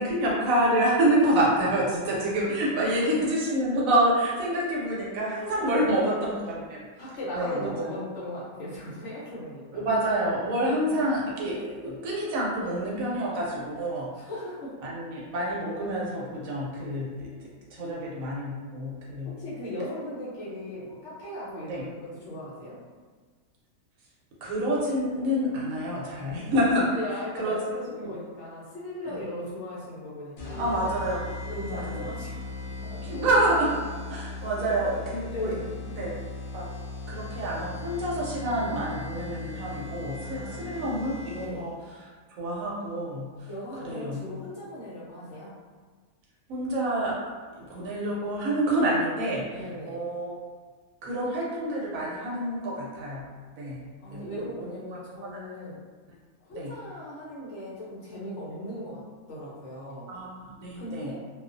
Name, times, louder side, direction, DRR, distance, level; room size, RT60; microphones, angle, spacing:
voice 1, 0.0-6.8 7.4-7.9 9.7-14.1 14.8-17.3 17.7-19.3 21.7-21.8 24.4-26.9 27.4-27.6 29.0-29.2 30.6-31.3 31.7-32.0 33.0-33.7 34.1-35.5 36.0-36.1 36.5-36.7 37.1-41.7 42.4-43.3 43.8-44.2 46.5-47.1 47.6-50.3 51.0-53.3 53.6-53.8 54.1-54.9 55.2-55.4 56.6-56.7 60.1-61.1, right 1 dB, 75° right, -4 dB, 1.0 m, -27 dB
voice 2, 2.8-3.2 5.6-6.0 7.0-9.9 10.6-11.0 11.5-11.8 14.1-14.7 19.2-22.8 26.3-26.6 26.9-30.8 31.4-33.3 34.6-34.7 35.3-35.7 40.2-40.9 41.3-41.7 43.5-45.5 49.5-50.0 54.0-55.8 56.4-59.0 59.3-60.1 60.8-61.2, left 1 dB, 60° left, -8 dB, 0.9 m, -38 dB
sound 1, 30.4-41.7, left 3 dB, 75° left, 0.5 m, -38 dB
2.4 x 2.3 x 2.5 m, 1.5 s
omnidirectional pair, 1.5 m